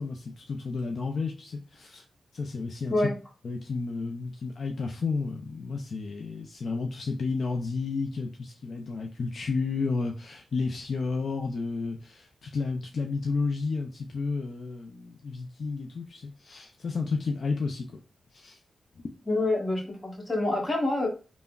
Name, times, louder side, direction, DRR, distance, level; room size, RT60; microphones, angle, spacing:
voice 1, 0.0-2.0 2.3-3.0 3.4-17.8 18.3-18.6, left 4 dB, 65° left, 0.3 m, -32 dB
voice 2, 19.3-21.1, left 2 dB, 35° left, 1.1 m, -27 dB
3.4 x 2.0 x 2.3 m
cardioid pair, 65°, 0 cm